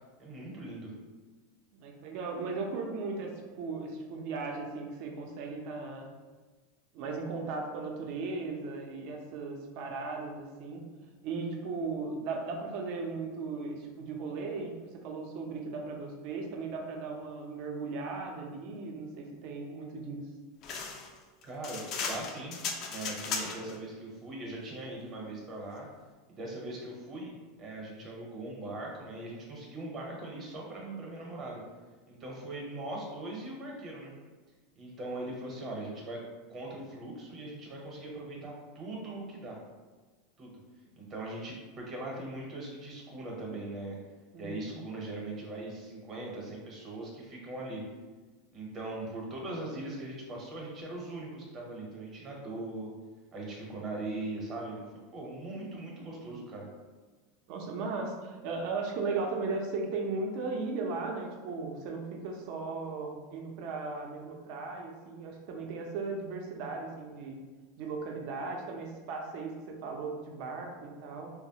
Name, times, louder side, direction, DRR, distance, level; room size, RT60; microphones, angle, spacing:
voice 1, 0.2-0.9 21.4-22.6 22.9-25.9 26.3-27.3 27.6-31.6 32.1-34.1 34.8-36.2 36.5-39.6 40.4-40.5 41.0-44.0 44.4-47.8 48.5-52.9 53.3-54.8 55.1-56.7, right 2 dB, 35° right, -2 dB, 0.8 m, -40 dB
voice 2, 1.7-3.3 3.6-6.1 6.9-10.9 11.2-20.2 44.3-44.8 57.5-67.4 67.8-71.3, right 4 dB, 60° right, 1 dB, 0.5 m, -37 dB
sound 1, 20.6-23.8, left 5 dB, 45° left, 0.4 m, -36 dB
3.1 x 2.0 x 2.8 m, 1.3 s
supercardioid pair, 125°, 0 cm